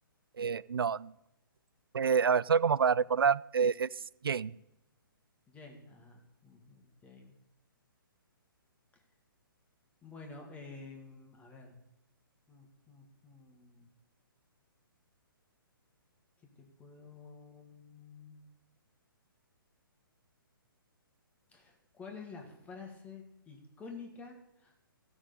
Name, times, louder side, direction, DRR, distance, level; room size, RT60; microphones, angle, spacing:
voice 1, 0.4-1.1 1.9-3.9 4.2-4.5, right 6 dB, 75° right, 21 dB, 0.4 m, -27 dB
voice 2, 5.5-7.3 8.9-9.0 10.0-11.8 12.5-13.9 16.5-18.4 21.5-24.9, left 4 dB, 10° left, 2 dB, 1.7 m, -50 dB
14.5 x 6.3 x 5.1 m, 0.85 s
figure-of-eight pair, 130°, 12 cm